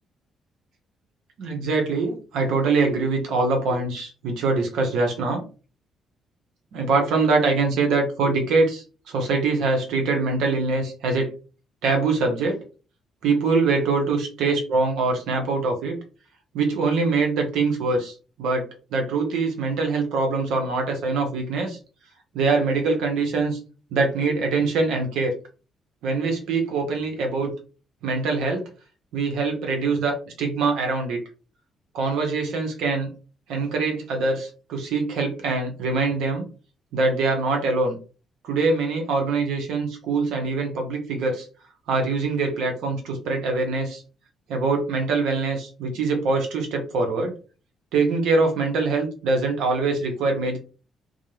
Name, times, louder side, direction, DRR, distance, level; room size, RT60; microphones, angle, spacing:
voice 1, 1.4-5.4 6.7-11.3 11.8-12.6 13.2-16.0 16.5-18.7 18.9-21.8 22.3-23.6 23.9-25.3 26.0-27.5 28.0-28.7 29.1-31.2 31.9-33.1 33.5-36.5 36.9-38.0 38.4-41.5 41.9-44.0 44.5-47.3 47.9-50.6, right 3 dB, 85° right, 2 dB, 0.7 m, -23 dB
2.5 x 2.0 x 3.0 m, 0.35 s
cardioid pair, 90°, 0 cm